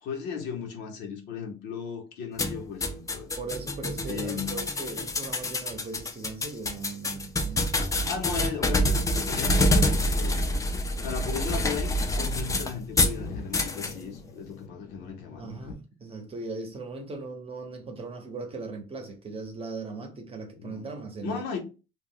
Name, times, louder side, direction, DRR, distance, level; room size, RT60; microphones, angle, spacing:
voice 1, 0.0-3.3 4.0-4.7 8.1-10.4 11.0-15.7 20.6-20.8 21.2-21.6, left 7 dB, 85° left, 0.9 m, -36 dB
sound 1, 2.4-13.2 13.5-13.9, left 1 dB, 20° left, 0.4 m, -27 dB
voice 2, 3.4-7.7 15.4-21.4, right 3 dB, 35° right, 0.7 m, -38 dB
sound 2, 9.0-15.7, left 3 dB, 55° left, 0.6 m, -43 dB
2.3 x 2.1 x 3.6 m
cardioid pair, 110°, 17 cm